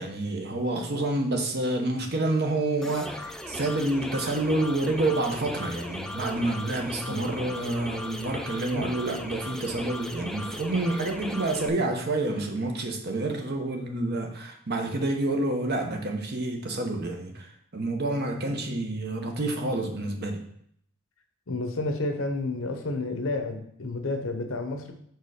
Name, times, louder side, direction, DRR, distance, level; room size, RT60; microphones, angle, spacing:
voice 1, 0.0-20.4, right 2 dB, 50° right, 4 dB, 0.9 m, -28 dB
sound 1, 2.8-11.7, left 1 dB, 5° left, 0.4 m, -37 dB
voice 2, 7.1-7.5 8.7-8.9 11.8-11.9 19.2-19.3 21.5-24.9, left 2 dB, 70° left, 6 dB, 0.9 m, -31 dB
4.8 x 4.7 x 4.8 m, 0.68 s
head